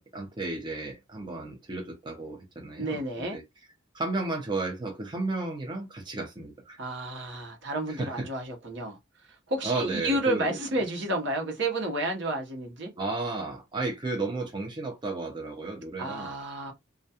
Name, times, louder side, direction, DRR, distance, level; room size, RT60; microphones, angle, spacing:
voice 1, 0.0-3.4 3.9-6.8 7.9-8.3 9.6-10.5 13.0-16.4, right 2 dB, 25° right, 0.5 m, -33 dB
voice 2, 2.8-3.4 6.8-9.0 9.5-12.9 16.0-16.7, right 1 dB, 65° right, 0.8 m, -31 dB
2.3 x 2.3 x 2.7 m
head